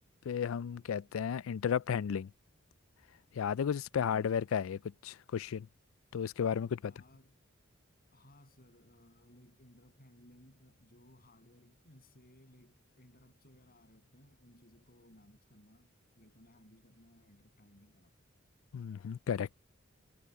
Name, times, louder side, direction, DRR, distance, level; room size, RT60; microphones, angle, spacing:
voice 1, 0.3-2.3 3.3-5.7 6.1-6.9 18.7-19.5, left 7 dB, 85° left, 0.4 m, -33 dB
voice 2, 6.8-7.4 8.1-18.3, left 1 dB, 50° left, 8.0 m, -61 dB
head